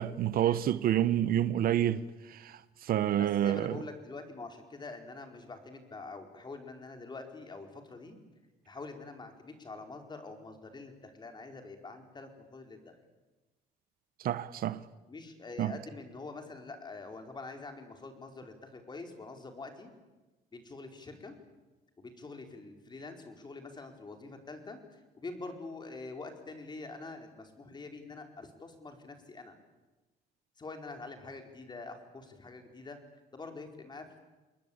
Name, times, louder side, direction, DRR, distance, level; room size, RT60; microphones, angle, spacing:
voice 1, 0.0-2.0 2.3-3.8 14.2-14.8 15.6-15.8, right 11 dB, 60° right, 1.0 m, -28 dB
voice 2, 3.2-8.2 8.7-12.9 15.1-19.9 20.5-21.3 22.0-29.5 30.6-33.0 33.3-34.2, left 3 dB, 25° left, 4.6 m, -45 dB
28.0 x 21.0 x 8.8 m
cardioid pair, 110°, 17 cm